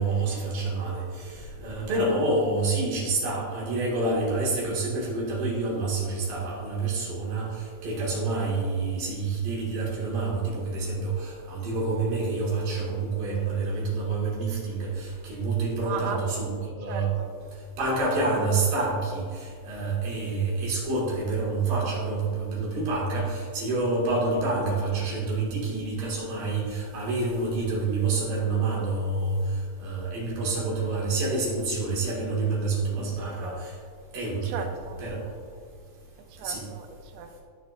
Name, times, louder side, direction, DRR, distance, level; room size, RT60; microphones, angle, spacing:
voice 1, 0.0-17.1 17.8-33.7 34.1-34.6 35.0-35.3 36.4-36.6, right 3 dB, 55° right, -5 dB, 3.0 m, -28 dB
voice 2, 15.8-16.2 16.8-17.3 34.4-35.0 36.4-37.4, right 6 dB, 85° right, 5 dB, 3.2 m, -36 dB
14.0 x 6.1 x 2.5 m, 2.1 s
omnidirectional pair, 5.7 m